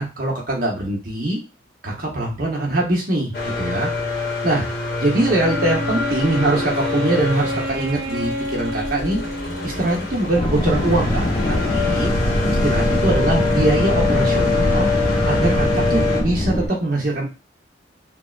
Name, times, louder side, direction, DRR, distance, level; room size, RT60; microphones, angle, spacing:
voice 1, 0.0-1.4 1.8-3.9 4.4-4.7 5.0-9.2 9.6-12.1 12.5-14.9 15.2-17.3, right 2 dB, 50° right, -2 dB, 0.9 m, -22 dB
sound 1, 3.3-16.2, left 3 dB, 55° left, 0.9 m, -25 dB
Wind instrument woodwind instrument, 5.4-10.2, equal, 70° right, 0.4 m, -29 dB
sound 2, 10.3-16.7, left 1 dB, 35° left, 0.4 m, -22 dB
3.4 x 2.1 x 2.4 m, 0.29 s
head